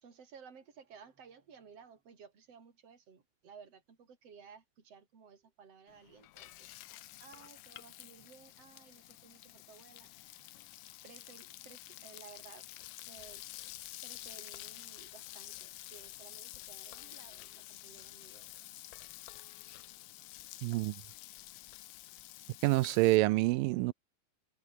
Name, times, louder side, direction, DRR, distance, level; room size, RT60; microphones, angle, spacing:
voice 1, 0.0-10.1 11.0-12.7 13.1-13.5 14.0-18.5, right 6 dB, 45° right, 4.9 m, -57 dB
Frying (food), 5.9-23.2, left 16 dB, 70° left, 2.3 m, -50 dB
voice 2, 20.6-21.0 22.6-23.9, right 20 dB, 90° right, 2.3 m, -27 dB
omnidirectional pair, 4.0 m